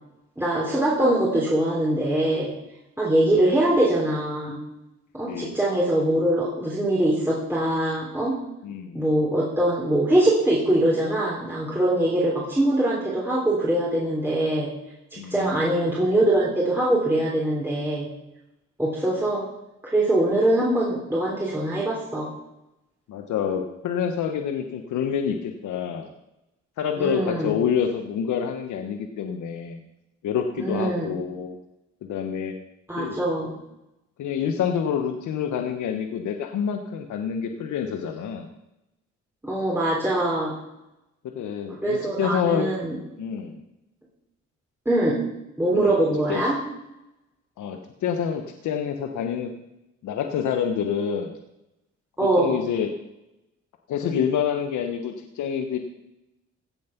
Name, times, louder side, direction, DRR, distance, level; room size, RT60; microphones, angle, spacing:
voice 1, 0.4-2.5 3.0-4.6 5.1-8.4 8.9-14.7 15.1-18.1 18.8-19.5 19.9-22.3 27.0-27.5 30.6-31.1 32.9-33.5 39.4-40.5 41.8-43.0 44.9-45.2 45.6-46.6 52.2-52.6, right 1 dB, 10° right, -5 dB, 3.4 m, -23 dB
voice 2, 8.6-9.0 12.3-12.4 15.2-15.5 23.1-26.1 26.8-29.8 30.2-31.6 32.0-32.5 33.0-33.2 34.2-38.5 41.3-42.7 43.2-43.6 45.7-46.0 46.3-46.4 47.6-49.5 50.0-51.3 52.4-52.9 53.9-55.8, left 7 dB, 75° left, 5 dB, 1.2 m, -27 dB
16.5 x 7.4 x 5.9 m, 0.91 s
cardioid pair, 90°, 30 cm